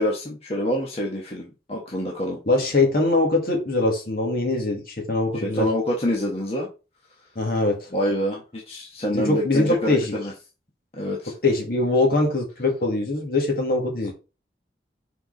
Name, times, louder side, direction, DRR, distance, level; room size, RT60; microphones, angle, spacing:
voice 1, 0.0-2.4 5.3-6.7 7.9-10.3 10.9-11.3, equal, 35° left, 1.3 m, -26 dB
voice 2, 2.5-5.7 7.4-7.9 9.1-10.1 11.4-14.1, left 2 dB, 55° left, 2.1 m, -22 dB
6.2 x 4.5 x 4.0 m
head